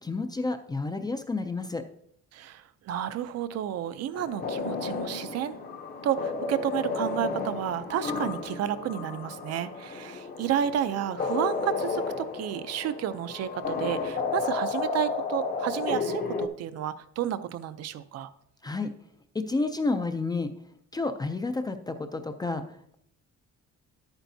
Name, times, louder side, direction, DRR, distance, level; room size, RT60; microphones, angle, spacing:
voice 1, 0.0-1.8 18.6-18.9 19.3-20.5 20.9-22.9, left 3 dB, 15° left, 8 dB, 0.4 m, -30 dB
voice 2, 2.3-5.6 6.0-18.3, right 10 dB, 60° right, 13 dB, 0.5 m, -31 dB
sound 1, 4.1-16.5, left 4 dB, 30° left, 0.7 m, -32 dB
11.0 x 8.9 x 2.7 m, 0.72 s
cardioid pair, 175°, 29 cm